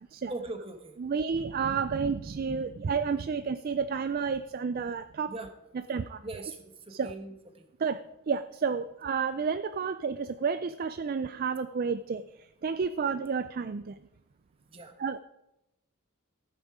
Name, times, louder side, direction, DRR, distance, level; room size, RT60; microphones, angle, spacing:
voice 1, 0.3-0.9 5.3-5.5 6.2-6.6 7.0-7.6 14.7-14.9, right 2 dB, 25° right, 6 dB, 1.2 m, -39 dB
voice 2, 1.0-5.3 5.9-6.2 6.9-7.1 7.8-14.0 15.0-15.2, right 5 dB, 45° right, 12 dB, 0.3 m, -31 dB
15.0 x 9.0 x 4.9 m, 0.92 s
head